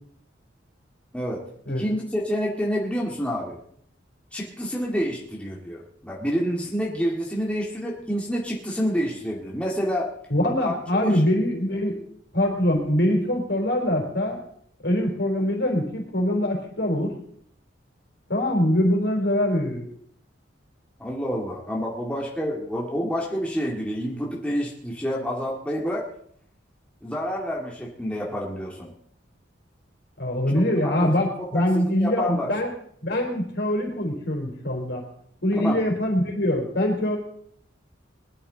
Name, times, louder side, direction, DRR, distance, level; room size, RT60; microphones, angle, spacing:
voice 1, 1.1-3.6 4.3-10.1 10.6-10.7 11.0-11.1 21.0-26.0 27.0-28.9 30.8-31.1 31.4-32.5 35.5-35.8, equal, 5° left, -3 dB, 2.1 m, -28 dB
voice 2, 10.3-12.0 12.3-14.4 14.8-17.2 18.3-19.9 30.2-32.7 33.0-35.0 35.4-37.2, left 1 dB, 60° left, 2 dB, 4.0 m, -23 dB
21.0 x 12.0 x 4.0 m, 0.63 s
head